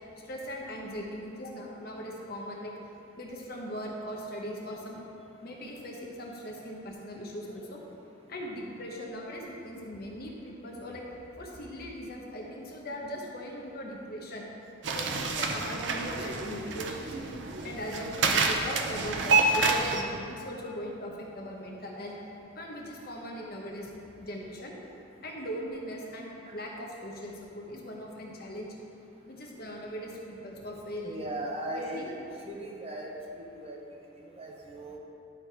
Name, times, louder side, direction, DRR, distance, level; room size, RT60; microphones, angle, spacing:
voice 1, 0.2-2.7 3.2-5.0 5.4-7.8 8.3-11.0 11.4-14.5 14.9-17.1 17.6-22.1 22.5-23.9 24.2-24.8 25.2-28.7 29.3-31.3 31.7-32.1, equal, 50° left, -1 dB, 1.0 m, -39 dB
sound 1, 14.8-20.0, right 3 dB, 65° right, 0.6 m, -28 dB
voice 2, 31.0-32.2 32.5-33.1 33.6-33.8 34.3-35.0, right 1 dB, 30° right, -2 dB, 1.0 m, -37 dB
11.0 x 3.9 x 4.5 m, 2.6 s
head